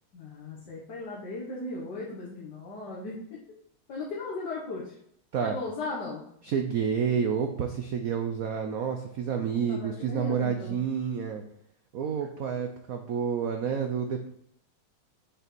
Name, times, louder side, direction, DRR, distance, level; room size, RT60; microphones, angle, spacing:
voice 1, 0.1-3.4 3.9-5.0 5.4-6.2 9.4-10.8, left 3 dB, 55° left, -4 dB, 2.0 m, -37 dB
voice 2, 6.4-11.4 11.9-14.3, right 7 dB, 65° right, 5 dB, 0.8 m, -29 dB
6.8 x 5.8 x 4.5 m, 0.72 s
omnidirectional pair, 2.3 m